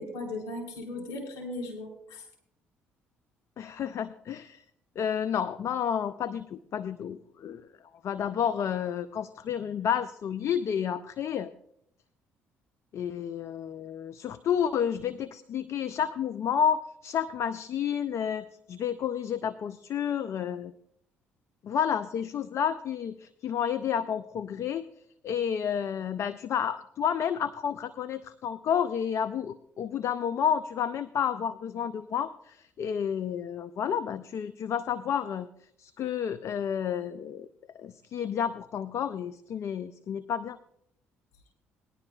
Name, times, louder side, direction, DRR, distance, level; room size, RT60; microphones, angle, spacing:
voice 1, 0.0-2.2, left 2 dB, 70° left, 1 dB, 3.6 m, -37 dB
voice 2, 3.6-4.6 5.0-7.7 8.0-11.5 12.9-20.7 21.6-24.9 25.2-35.5 35.8-37.5 37.8-40.6, left 8 dB, 55° left, 14 dB, 0.5 m, -30 dB
19.5 x 10.5 x 2.3 m, 0.73 s
hypercardioid pair, 55°, 6 cm